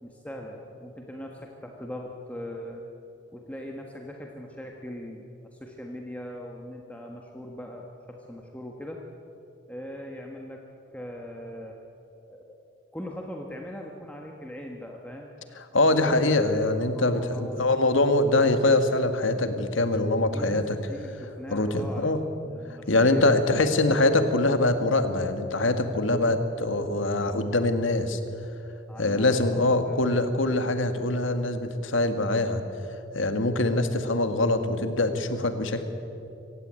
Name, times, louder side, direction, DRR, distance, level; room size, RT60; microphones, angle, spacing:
voice 1, 0.0-2.8 3.3-9.0 9.7-10.6 10.9-11.8 12.3-12.6 12.9-15.3 16.0-16.7 16.9-18.0 20.3-22.1 22.4-23.2 28.9-30.0, equal, 5° left, 1 dB, 1.5 m, -40 dB
voice 2, 15.7-20.8 21.5-22.2 22.9-28.2 29.0-32.6 33.1-35.8, left 2 dB, 80° left, 8 dB, 1.8 m, -23 dB
25.0 x 16.0 x 9.0 m, 2.8 s
head